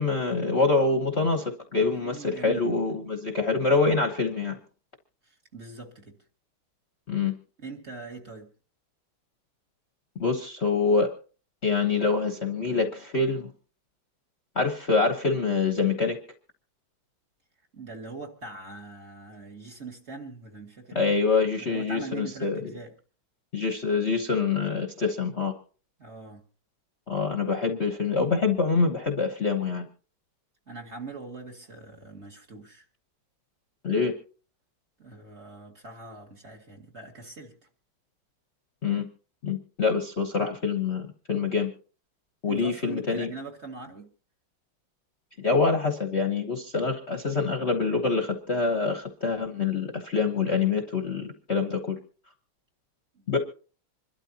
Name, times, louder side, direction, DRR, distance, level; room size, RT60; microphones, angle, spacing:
voice 1, 0.0-4.6 7.1-7.3 10.2-11.1 11.6-13.5 14.5-16.2 20.9-22.6 23.5-25.5 27.1-29.9 33.8-34.1 38.8-39.1 39.4-41.7 42.4-43.3 45.4-52.0 53.3-53.4, left 4 dB, 40° left, 1.2 m, -25 dB
voice 2, 1.8-2.8 5.2-6.2 7.6-8.5 17.7-21.1 21.6-23.0 26.0-26.4 30.7-32.8 35.0-37.6 42.5-44.1 53.1-53.4, right 3 dB, 35° right, 2.2 m, -42 dB
26.0 x 12.5 x 2.9 m
omnidirectional pair, 2.2 m